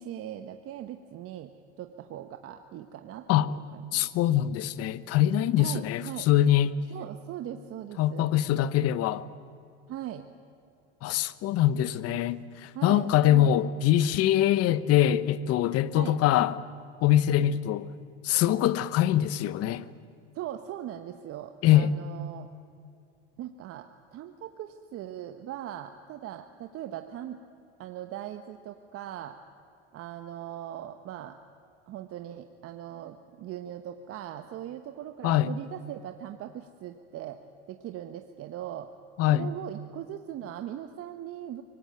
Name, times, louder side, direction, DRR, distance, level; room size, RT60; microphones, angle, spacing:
voice 1, 0.0-1.5 1.8-4.1 5.6-6.3 6.9-8.3 9.9-10.3 12.7-13.6 15.9-16.2 20.3-22.5 23.4-27.4 27.8-29.4 29.9-31.4 31.9-37.4 37.7-38.9 39.3-41.6, right 11 dB, 45° right, 1.2 m, -40 dB
voice 2, 3.9-6.7 8.0-9.2 11.0-16.5 17.0-17.9 18.2-19.9 21.6-21.9 35.2-35.5 39.2-39.5, left 12 dB, 50° left, 1.0 m, -23 dB
23.5 x 19.5 x 9.1 m
hypercardioid pair, 95°, 32 cm